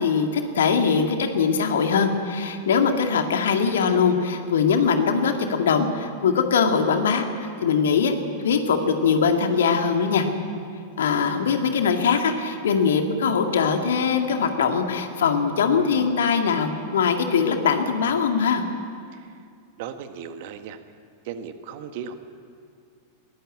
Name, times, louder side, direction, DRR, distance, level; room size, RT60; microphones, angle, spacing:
voice 1, 0.0-8.1 8.4-10.2 11.0-18.6, left 6 dB, 65° left, 5 dB, 2.2 m, -22 dB
voice 2, 19.1-19.4 19.8-20.8 21.2-22.1, right 7 dB, 50° right, 8 dB, 1.7 m, -36 dB
21.5 x 18.0 x 8.7 m, 2.3 s
figure-of-eight pair, 90°, 0 cm